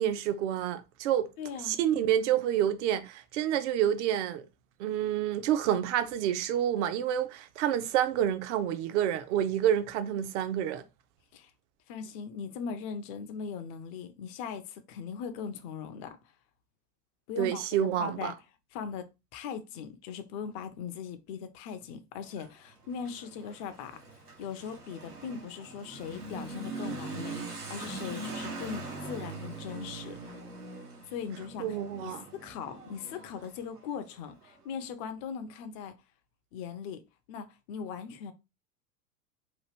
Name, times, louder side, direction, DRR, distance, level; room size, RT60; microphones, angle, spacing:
voice 1, 0.0-1.3 1.6-4.4 4.8-10.8 17.4-18.3 31.6-32.2, right 10 dB, 55° right, 0.6 m, -28 dB
voice 2, 1.4-1.8 11.3-11.5 11.9-16.2 17.3-18.3 18.7-24.0 24.4-30.4 31.1-31.8 32.0-35.9 36.5-37.0 37.3-38.3, left 7 dB, 35° left, 0.5 m, -40 dB
Motorcycle / Accelerating revving vroom, 22.2-34.6, right 3 dB, 90° right, 0.9 m, -42 dB
2.9 x 2.3 x 3.3 m
figure-of-eight pair, 80°, 45 cm